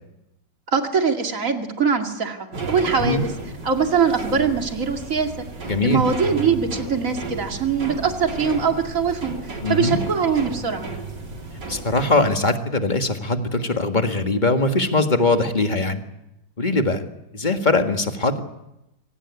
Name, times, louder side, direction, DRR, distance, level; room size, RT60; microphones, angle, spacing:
voice 1, 0.7-3.3 3.6-5.3 5.8-10.9, right 6 dB, 45° right, 4 dB, 2.7 m, -22 dB
sound 1, 2.5-12.2, right 3 dB, 65° right, 3.7 m, -33 dB
voice 2, 5.7-6.0 9.6-10.0 11.7-16.0 16.6-17.0 17.3-18.4, left 2 dB, 25° left, 6 dB, 1.8 m, -21 dB
24.5 x 18.0 x 9.8 m, 0.91 s
omnidirectional pair, 2.0 m